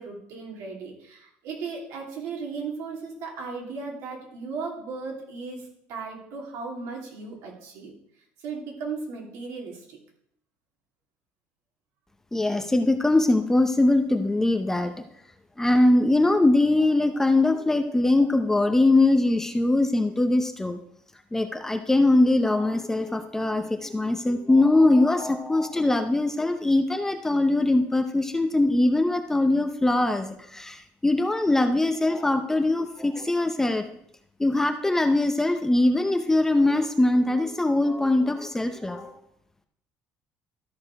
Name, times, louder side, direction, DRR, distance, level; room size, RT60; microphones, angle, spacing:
voice 1, 0.0-7.9 8.4-10.0, right 4 dB, 75° right, 0 dB, 2.9 m, -36 dB
voice 2, 12.3-15.0 15.6-20.8 21.3-33.8 34.4-39.1, left 2 dB, 10° left, 7 dB, 0.7 m, -22 dB
13.0 x 4.8 x 4.8 m, 0.71 s
cardioid pair, 140°, 5 cm